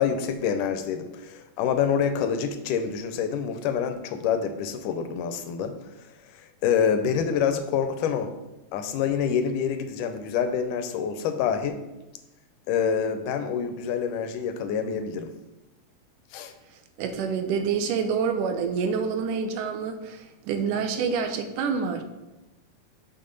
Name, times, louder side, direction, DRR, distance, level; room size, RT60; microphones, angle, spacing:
voice 1, 0.0-5.7 6.6-8.3 8.7-11.8 12.7-15.3 16.3-16.5, left 7 dB, 90° left, 8 dB, 2.2 m, -26 dB
voice 2, 17.0-22.0, right 6 dB, 85° right, 7 dB, 2.3 m, -27 dB
6.6 x 5.7 x 5.2 m, 1.0 s
omnidirectional pair, 3.7 m